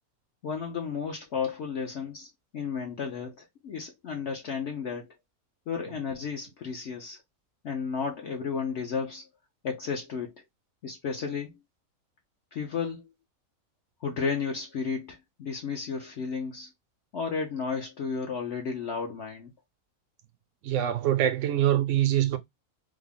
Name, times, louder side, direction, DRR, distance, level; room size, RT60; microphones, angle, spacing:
voice 1, 0.4-5.1 5.7-7.2 7.6-9.3 9.6-10.3 10.8-11.5 12.5-13.0 14.0-16.7 17.1-19.5, left 5 dB, 60° left, 0.9 m, -33 dB
voice 2, 20.6-22.4, right 12 dB, 65° right, 0.8 m, -24 dB
3.4 x 2.1 x 3.6 m
omnidirectional pair, 1.5 m